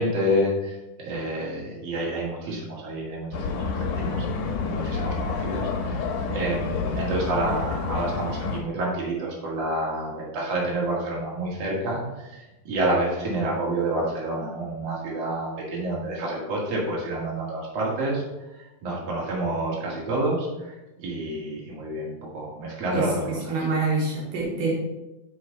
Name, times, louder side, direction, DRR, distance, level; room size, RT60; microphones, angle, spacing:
voice 1, 0.0-4.3 4.6-18.2 18.5-23.6, right 1 dB, 50° right, -4 dB, 2.8 m, -29 dB
sound 1, 3.3-8.6, left 4 dB, 70° left, 2.3 m, -29 dB
voice 2, 22.9-24.7, right 3 dB, 75° right, -4 dB, 2.8 m, -26 dB
6.3 x 5.1 x 5.2 m, 1.0 s
omnidirectional pair, 4.0 m